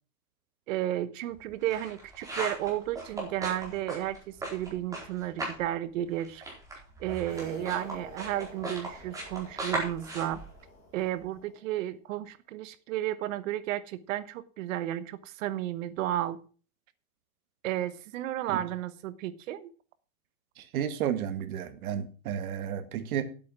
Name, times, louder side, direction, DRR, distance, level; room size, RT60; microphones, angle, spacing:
voice 1, 0.7-6.4 7.0-10.4 10.9-16.4 17.6-19.7, right 13 dB, 65° right, 1.2 m, -33 dB
sound 1, 1.3-5.7 5.9-11.3, right 2 dB, 10° right, 4.4 m, -38 dB
sound 2, 7.3-11.7, left 4 dB, 25° left, 3.9 m, -50 dB
voice 2, 20.6-23.2, right 9 dB, 80° right, 1.9 m, -32 dB
10.0 x 8.4 x 6.1 m
supercardioid pair, 165°, 42 cm